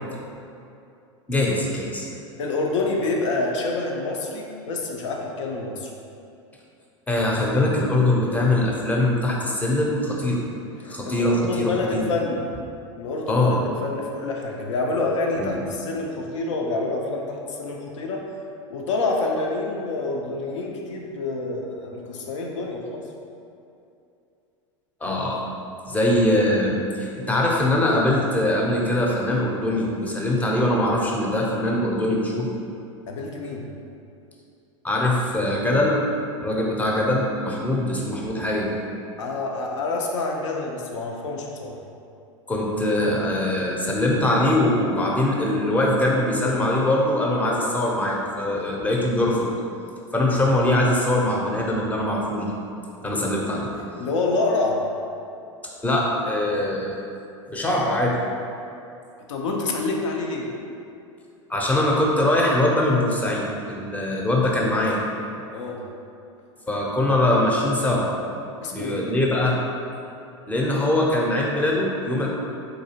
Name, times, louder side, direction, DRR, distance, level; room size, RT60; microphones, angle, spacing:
voice 1, 1.3-2.1 7.1-10.4 10.9-12.0 13.3-13.6 15.4-15.6 25.0-25.4 25.9-32.5 34.8-36.0 36.4-38.8 42.5-49.5 50.1-52.5 53.0-53.7 55.8-57.0 57.5-58.2 61.5-65.0 66.7-68.0 68.7-69.6 70.5-72.3, left 1 dB, 10° left, -3 dB, 0.6 m, -22 dB
voice 2, 2.4-5.9 10.8-12.4 13.0-18.2 18.7-23.0 33.1-33.6 39.2-41.8 54.0-54.8 59.3-60.5 65.5-65.8 68.6-69.0, left 3 dB, 70° left, 0 dB, 0.6 m, -27 dB
3.9 x 2.6 x 2.8 m, 2.6 s
hypercardioid pair, 90°, 16 cm